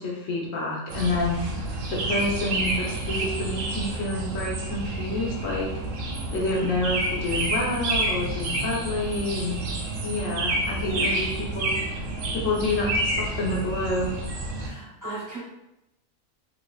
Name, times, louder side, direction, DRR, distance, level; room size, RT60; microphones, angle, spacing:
voice 1, 0.0-1.4 1.9-5.7 6.3-9.6 10.0-11.3 11.5-11.7 12.3-14.2, left 2 dB, 65° left, -3 dB, 1.2 m, -28 dB
sound 1, 0.9-14.7, right 2 dB, 70° right, 1.0 m, -29 dB
voice 2, 10.7-11.3 14.6-15.4, right 1 dB, 15° right, -8 dB, 1.2 m, -35 dB
3.2 x 3.2 x 2.3 m, 0.88 s
omnidirectional pair, 1.5 m